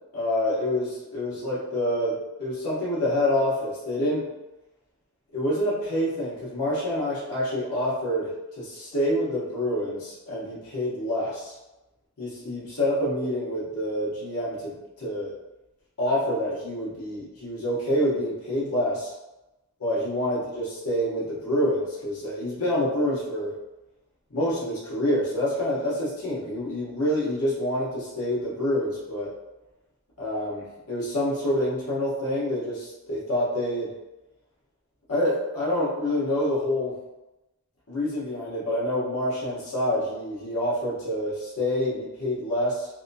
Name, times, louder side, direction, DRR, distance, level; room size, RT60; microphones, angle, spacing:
voice 1, 0.1-4.2 5.3-8.3 8.6-11.5 12.2-15.3 16.0-19.1 19.8-23.5 24.3-29.3 30.2-33.9 35.1-36.9 37.9-42.9, left 1 dB, 85° left, -7 dB, 1.0 m, -27 dB
2.8 x 2.2 x 2.6 m, 1.0 s
head